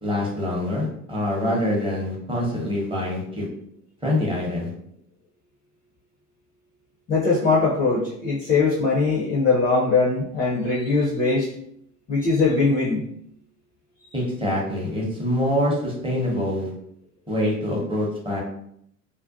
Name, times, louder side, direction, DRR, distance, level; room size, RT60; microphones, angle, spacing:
voice 1, 0.0-3.5 4.0-4.7 14.1-16.7 17.3-18.4, left 1 dB, 10° right, -3 dB, 0.7 m, -25 dB
voice 2, 7.1-11.5 12.1-13.0, left 3 dB, 20° left, -5 dB, 0.5 m, -21 dB
2.5 x 2.2 x 2.4 m, 0.71 s
figure-of-eight pair, 70°, 46 cm